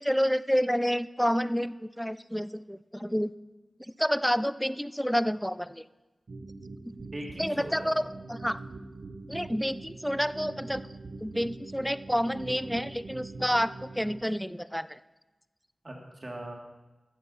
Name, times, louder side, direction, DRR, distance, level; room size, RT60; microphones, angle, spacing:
voice 1, 0.0-3.3 3.8-5.8 7.4-8.6 9.3-10.8 11.2-15.0, equal, ahead, 15 dB, 0.3 m, -29 dB
sound 1, 6.3-14.2, right 3 dB, 70° right, 0.8 m, -43 dB
voice 2, 6.9-8.1 15.8-16.5, right 1 dB, 40° right, 0 dB, 2.2 m, -40 dB
9.4 x 7.0 x 6.9 m, 1.1 s
wide cardioid pair, 70°, 0 cm